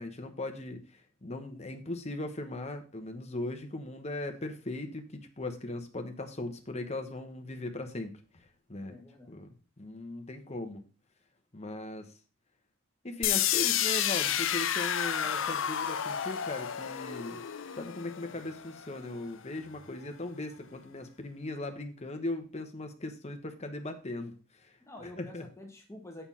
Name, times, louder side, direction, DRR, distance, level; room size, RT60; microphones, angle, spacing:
voice 1, 0.0-9.0 9.3-10.8 11.5-12.1 13.0-17.4 17.8-24.8 25.2-25.5, left 2 dB, 30° left, 6 dB, 1.1 m, -39 dB
voice 2, 8.8-9.3 15.2-15.5 24.8-26.2, left 1 dB, 15° left, 2 dB, 1.4 m, -48 dB
sound 1, 13.2-19.2, left 10 dB, 65° left, 0.6 m, -31 dB
7.0 x 5.7 x 5.6 m, 0.36 s
head